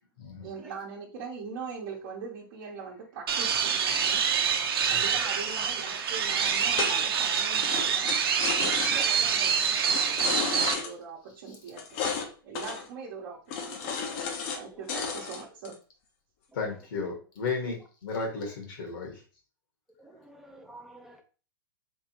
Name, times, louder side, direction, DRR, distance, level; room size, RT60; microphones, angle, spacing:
voice 1, 0.4-4.2 4.9-8.1 8.6-13.9 14.5-15.8, right 5 dB, 55° right, 1.0 m, -41 dB
sound 1, 3.3-10.7, right 7 dB, 80° right, 0.8 m, -26 dB
sound 2, 5.5-7.3 7.6-9.1 9.8-10.9 11.8-12.3 12.5-12.9 13.5-14.6 14.9-15.7, left 6 dB, 40° left, 0.7 m, -33 dB
voice 2, 16.5-19.2, left 4 dB, 65° left, 1.5 m, -34 dB
voice 3, 20.0-21.2, right 1 dB, ahead, 0.6 m, -50 dB
3.6 x 3.3 x 2.9 m
hypercardioid pair, 150°, 12 cm